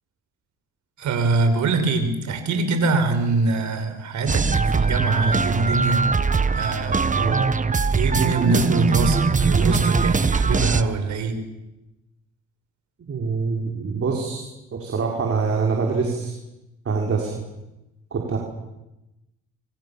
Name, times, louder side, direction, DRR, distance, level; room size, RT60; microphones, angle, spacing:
voice 1, 1.0-6.1 6.5-7.2 7.9-11.4, right 3 dB, 70° right, 7 dB, 5.7 m, -23 dB
sound 1, 4.3-10.8, right 4 dB, 25° right, 1.5 m, -21 dB
voice 2, 7.1-7.5 13.0-16.3 16.9-17.4 18.1-18.4, right 4 dB, 50° right, 0 dB, 5.5 m, -25 dB
28.0 x 25.0 x 7.3 m, 0.96 s
cardioid pair, 90°, 30 cm